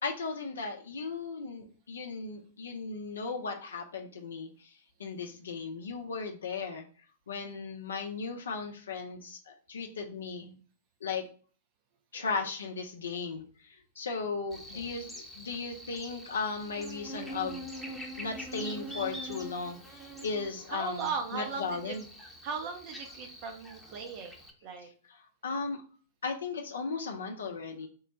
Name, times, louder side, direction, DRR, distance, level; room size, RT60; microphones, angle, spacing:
voice 1, 0.0-4.7 5.0-6.8 7.3-10.5 11.0-11.2 12.1-17.8 18.2-22.1 25.1-25.8 26.2-27.9, left 4 dB, 70° left, 3 dB, 0.5 m, -36 dB
voice 2, 12.1-12.5 14.7-14.9 18.0-18.3 20.7-22.0 22.4-24.4 24.6-24.9, right 5 dB, 40° right, 5 dB, 0.7 m, -38 dB
Buzz, 14.5-24.5, right 1 dB, ahead, 0.8 m, -44 dB
3.7 x 2.1 x 4.0 m, 0.41 s
figure-of-eight pair, 105°, 0 cm